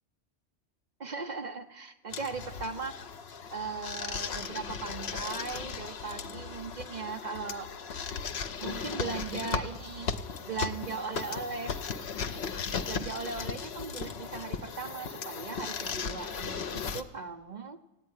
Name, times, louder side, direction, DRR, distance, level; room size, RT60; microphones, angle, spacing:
voice 1, 1.0-3.0 3.5-7.7 8.6-10.1 10.4-11.8 12.9-17.8, right 4 dB, 45° right, 8 dB, 0.7 m, -38 dB
sound 1, 2.1-17.0, left 6 dB, 65° left, 1.0 m, -37 dB
15.5 x 9.4 x 9.6 m, 1.0 s
omnidirectional pair, 1.2 m